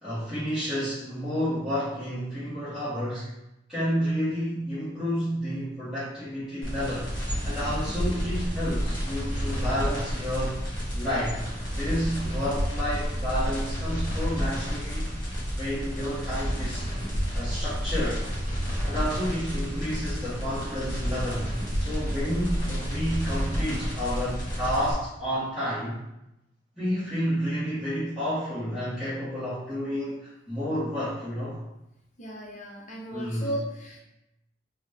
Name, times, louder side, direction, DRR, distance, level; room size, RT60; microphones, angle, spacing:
voice 1, 0.0-3.3 3.7-7.1 7.4-10.6 10.9-11.5 11.7-15.1 15.5-16.9 17.3-18.2 18.8-21.5 21.8-26.0 26.8-31.6 33.1-33.5, equal, ahead, -15 dB, 1.1 m, -30 dB
sound 1, 6.6-24.9, equal, 25° left, 1.5 m, -30 dB
voice 2, 32.2-34.0, right 1 dB, 40° left, -2 dB, 0.7 m, -35 dB
3.8 x 2.2 x 3.3 m, 0.89 s
head